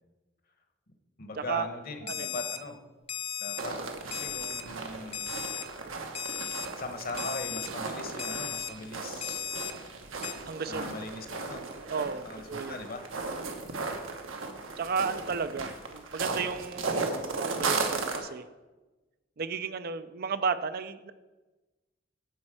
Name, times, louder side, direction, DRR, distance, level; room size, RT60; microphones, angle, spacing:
voice 1, 1.2-2.8 3.4-3.7 4.1-5.3 6.8-9.5 10.7-11.7 12.2-13.1, left 2 dB, 45° left, 6 dB, 1.1 m, -39 dB
Alarm, 2.1-2.6 3.1-3.6 4.1-4.6 5.1-5.6 6.1-6.7 7.2-7.7 8.2-8.7 9.2-9.7 10.2-10.3, left 9 dB, 30° left, 0.5 m, -35 dB
sound 1, 3.6-18.2, right 3 dB, 85° right, 1.2 m, -36 dB
voice 2, 10.5-10.9 11.9-12.8 14.8-18.4 19.4-21.1, right 5 dB, 50° right, 12 dB, 0.5 m, -33 dB
10.5 x 4.4 x 7.6 m, 1.2 s
head